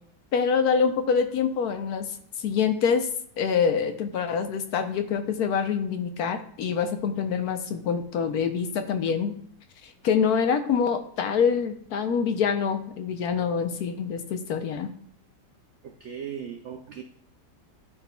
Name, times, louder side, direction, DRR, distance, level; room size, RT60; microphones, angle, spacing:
voice 1, 0.3-2.0 2.4-3.1 3.4-9.4 9.8-14.9, left 6 dB, 70° left, 7 dB, 1.1 m, -25 dB
voice 2, 15.8-17.0, right 8 dB, 80° right, 5 dB, 0.6 m, -37 dB
11.5 x 4.1 x 2.2 m, 0.66 s
omnidirectional pair, 1.9 m